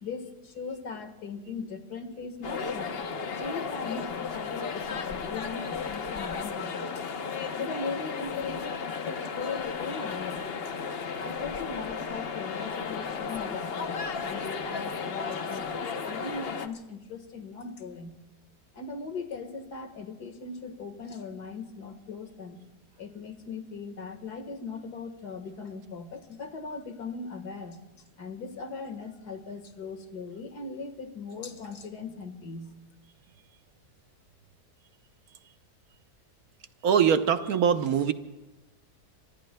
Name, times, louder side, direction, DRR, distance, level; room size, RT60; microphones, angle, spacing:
voice 1, 0.0-3.0 3.3-7.1 7.5-10.8 11.2-18.1 18.7-22.6 23.0-27.8 28.2-32.7, left 4 dB, 70° left, 7 dB, 2.1 m, -39 dB
sound 1, 2.4-16.7, left 5 dB, 45° left, 0.9 m, -34 dB
voice 2, 36.8-38.1, right 7 dB, 65° right, 9 dB, 1.2 m, -23 dB
25.5 x 24.5 x 2.2 m, 1.0 s
omnidirectional pair, 1.8 m